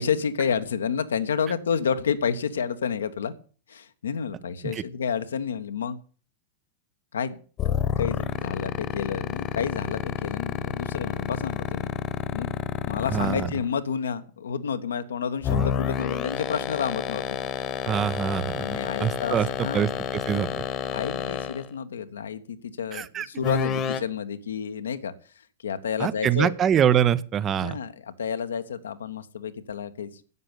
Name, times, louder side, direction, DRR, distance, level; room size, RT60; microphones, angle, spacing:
voice 1, 0.0-3.3 3.7-6.0 7.1-7.4 8.0-11.9 12.3-12.5 12.8-17.2 18.6-19.8 20.9-26.6 27.6-30.2, left 7 dB, 70° left, 11 dB, 1.2 m, -30 dB
sound 1, 7.6-13.7 15.4-21.7 23.4-24.0, left 8 dB, 30° left, 1.4 m, -28 dB
voice 2, 13.1-13.5 15.5-15.7 17.9-20.5 22.9-23.3 26.0-27.8, right 9 dB, 25° right, 16 dB, 0.8 m, -25 dB
11.0 x 8.9 x 8.2 m, 0.41 s
figure-of-eight pair, 90°, 0 cm